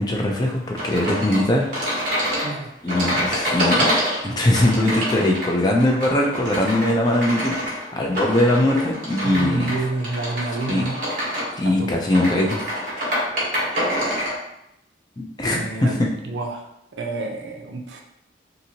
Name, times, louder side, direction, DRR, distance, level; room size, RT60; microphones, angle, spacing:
voice 1, 0.0-2.2 2.8-3.9 4.2-9.7 10.7-10.8 11.6-12.6 15.2-16.0, left 1 dB, 20° left, 0 dB, 0.4 m, -21 dB
sound 1, 0.8-14.4, equal, 50° right, 1.1 m, -26 dB
voice 2, 9.2-11.0 11.6-11.9 15.5-16.0 16.2-18.0, right 3 dB, 80° right, 2 dB, 0.5 m, -29 dB
2.8 x 2.6 x 2.7 m, 0.81 s
head